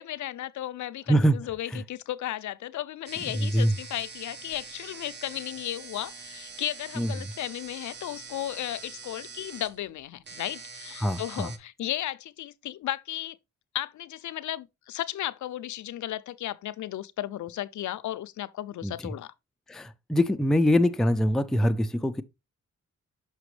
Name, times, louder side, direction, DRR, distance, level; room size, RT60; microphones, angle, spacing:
voice 1, 0.0-13.4 13.7-19.3, left 13 dB, 65° left, 0.5 m, -35 dB
voice 2, 1.1-1.4 1.7-1.8 3.3-3.7 7.0-7.1 11.0-11.5 18.8-19.1 19.7-22.2, equal, ahead, 0.4 m, -24 dB
sound 1, 3.1-11.6, right 5 dB, 35° right, 0.7 m, -44 dB
6.0 x 5.6 x 3.2 m
cardioid pair, 90°, 31 cm